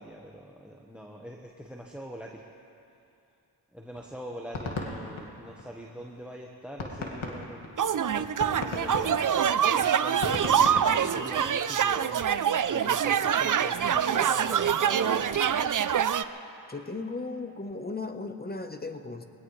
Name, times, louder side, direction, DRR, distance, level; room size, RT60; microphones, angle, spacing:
voice 1, 0.0-2.4 3.7-10.8 11.1-12.3 12.7-15.7, equal, ahead, 0 dB, 1.3 m, -43 dB
sound 1, 4.0-6.0 6.4-6.5 6.8-11.7, left 3 dB, 80° left, 2.2 m, -36 dB
sound 2, 7.8-16.2, right 8 dB, 45° right, 0.6 m, -25 dB
voice 2, 16.7-19.2, left 3 dB, 20° left, 7 dB, 1.1 m, -36 dB
22.5 x 18.0 x 3.3 m, 2.6 s
cardioid pair, 55°, 47 cm